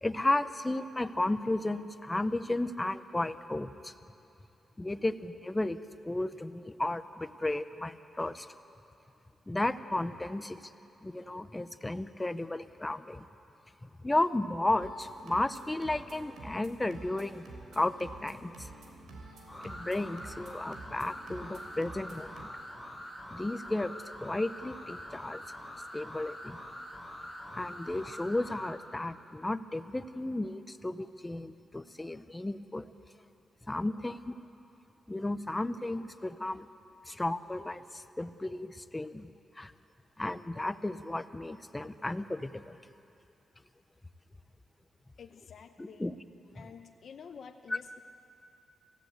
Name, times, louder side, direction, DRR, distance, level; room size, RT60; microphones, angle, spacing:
voice 1, 0.0-3.9 4.8-5.8 6.0-8.5 9.5-10.7 11.0-13.2 13.8-17.4 17.7-18.7 19.6-22.5 23.3-23.9 24.2-25.4 25.9-26.6 27.5-32.9 33.7-34.4 35.1-36.7 37.1-39.3 39.5-39.7 40.2-42.8 45.8-46.1 46.6-46.7 47.7-47.8, left 2 dB, 10° left, 11 dB, 0.7 m, -33 dB
sound 1, 14.8-22.5, right 2 dB, 85° right, 3.4 m, -49 dB
sound 2, 19.5-28.7, equal, 10° right, 5.8 m, -45 dB
voice 2, 45.2-46.1 46.5-48.0, left 6 dB, 55° left, 6 dB, 0.8 m, -49 dB
26.5 x 15.5 x 8.0 m, 2.7 s
wide cardioid pair, 150°, 0 cm